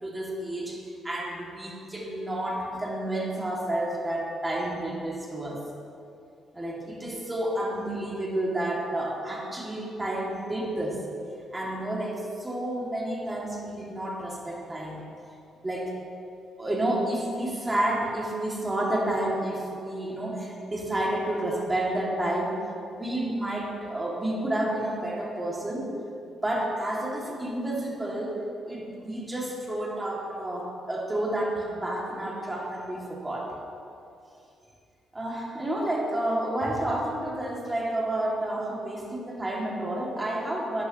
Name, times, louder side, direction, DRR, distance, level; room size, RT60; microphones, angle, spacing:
voice 1, 0.0-5.6 6.5-11.1 11.5-15.0 15.6-16.0 16.6-22.6 22.9-25.9 26.4-33.5 35.1-40.8, right 1 dB, 15° right, -3 dB, 2.5 m, -30 dB
12.0 x 9.8 x 3.1 m, 2.6 s
cardioid pair, 90°, 0 cm